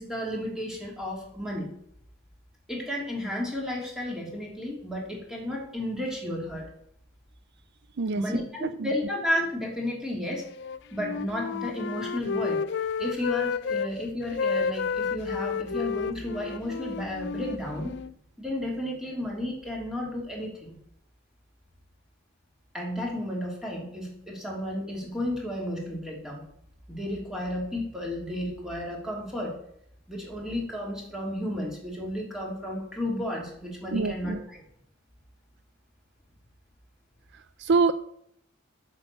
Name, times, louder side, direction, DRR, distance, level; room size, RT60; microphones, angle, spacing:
voice 1, 0.0-1.7 2.7-6.7 8.1-10.4 10.9-12.6 13.0-17.9 18.4-20.7 22.7-26.4 26.9-29.5 30.1-34.6, left 1 dB, 5° right, -2 dB, 3.1 m, -32 dB
voice 2, 8.0-8.9 33.9-34.4 37.3-37.9, right 4 dB, 60° right, 13 dB, 0.5 m, -26 dB
Wind instrument woodwind instrument, 10.5-13.9 14.2-18.1, left 6 dB, 60° left, 0.5 m, -31 dB
8.6 x 6.4 x 8.3 m, 0.72 s
head